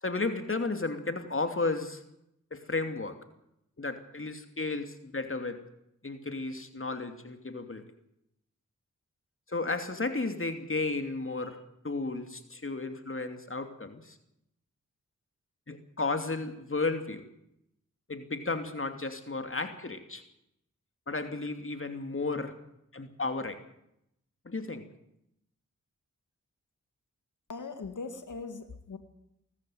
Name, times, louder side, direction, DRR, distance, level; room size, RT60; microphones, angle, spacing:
voice 1, 0.0-2.0 2.5-3.2 3.8-5.6 6.0-7.8 9.5-11.6 11.8-14.2 15.7-17.2 18.1-20.2 21.1-22.5 22.9-23.6 24.4-24.8, left 3 dB, 40° left, 7 dB, 2.9 m, -33 dB
voice 2, 27.5-29.0, left 4 dB, 70° left, 8 dB, 2.2 m, -40 dB
19.0 x 14.5 x 9.4 m, 0.79 s
cardioid pair, 40°, 31 cm